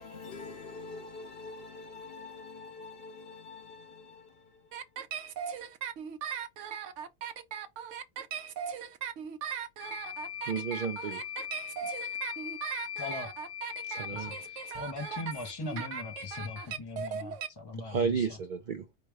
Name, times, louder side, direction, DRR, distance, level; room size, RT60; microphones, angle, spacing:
voice 1, 0.0-4.9, left 3 dB, 55° left, 1.2 m, -46 dB
sound 1, 4.7-17.5, right 8 dB, 80° right, 1.0 m, -38 dB
sound 2, 9.8-16.7, left 9 dB, 70° left, 0.8 m, -41 dB
voice 2, 10.5-11.2 13.8-14.4 17.8-18.9, right 6 dB, 60° right, 0.5 m, -32 dB
voice 3, 13.0-13.3 14.0-18.4, left 3 dB, 30° left, 0.5 m, -40 dB
4.9 x 2.2 x 4.6 m
omnidirectional pair, 1.2 m